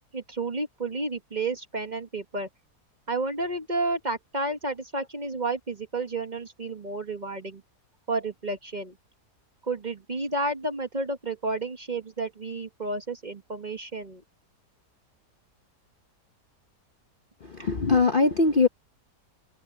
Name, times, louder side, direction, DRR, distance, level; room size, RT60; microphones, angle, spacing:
voice 1, 0.1-2.5 3.1-7.6 8.1-9.0 9.6-14.2, right 2 dB, 30° right, 1.4 m, -31 dB
voice 2, 17.4-18.7, left 4 dB, 40° left, 0.9 m, -21 dB
omnidirectional pair, 1.7 m